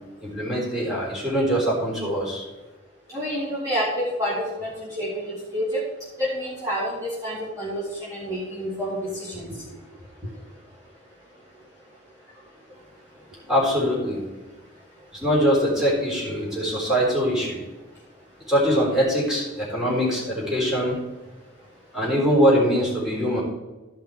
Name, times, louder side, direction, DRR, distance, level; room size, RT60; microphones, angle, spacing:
voice 1, 0.2-2.4 13.5-14.2 15.2-17.6 18.5-20.9 21.9-23.4, equal, 5° right, -6 dB, 3.7 m, -22 dB
voice 2, 3.1-5.8 6.2-9.6, equal, 20° right, -9 dB, 2.2 m, -28 dB
13.5 x 5.5 x 4.6 m, 1.2 s
head